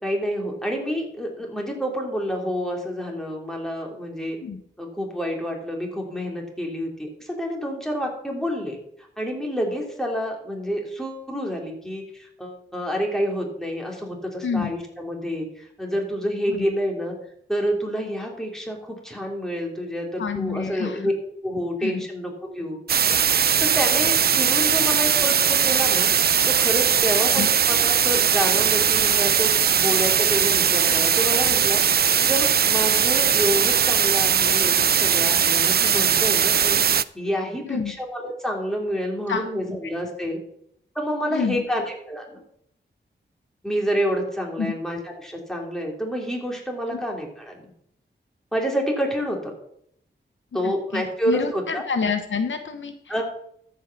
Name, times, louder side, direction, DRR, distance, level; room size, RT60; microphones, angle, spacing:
voice 1, 0.0-4.4 4.8-8.8 9.2-17.1 17.5-21.1 21.4-22.8 23.6-26.1 26.5-31.8 32.2-36.8 37.1-40.4 41.0-42.4 43.6-47.7 48.5-49.5 50.5-51.8 53.1-53.2, equal, ahead, 0 dB, 3.4 m, -28 dB
voice 2, 20.2-21.0 21.8-22.0 27.4-27.5 37.7-37.9 39.3-39.5 41.3-41.6 44.6-44.7 46.9-47.0 50.6-53.1, left 5 dB, 75° left, 8 dB, 1.0 m, -28 dB
sound 1, 22.9-37.0, right 8 dB, 55° right, 0.4 m, -20 dB
13.5 x 5.5 x 6.1 m, 0.71 s
cardioid pair, 65°, 20 cm